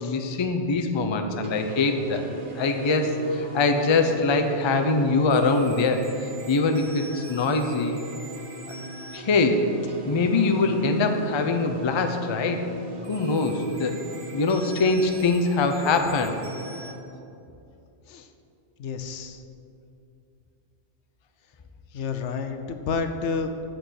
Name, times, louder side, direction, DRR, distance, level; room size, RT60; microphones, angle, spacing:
voice 1, 0.0-2.2 2.5-8.0 9.1-9.7 10.0-12.7 13.1-13.9 14.3-16.4, left 3 dB, 35° left, 6 dB, 0.5 m, -23 dB
sound 1, 1.4-16.9, right 1 dB, 45° right, 1.1 m, -39 dB
voice 2, 18.8-19.4 21.9-23.5, left 5 dB, 75° left, 8 dB, 1.0 m, -30 dB
7.8 x 6.7 x 6.2 m, 2.7 s
omnidirectional pair, 1.2 m